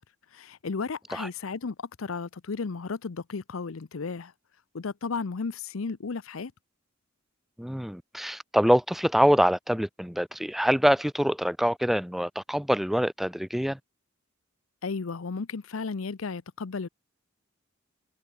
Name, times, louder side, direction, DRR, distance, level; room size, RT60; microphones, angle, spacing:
voice 1, 0.3-4.3 4.7-6.5 14.8-16.9, left 4 dB, 85° left, 0.7 m, -34 dB
voice 2, 7.6-13.8, equal, ahead, 0.5 m, -25 dB
head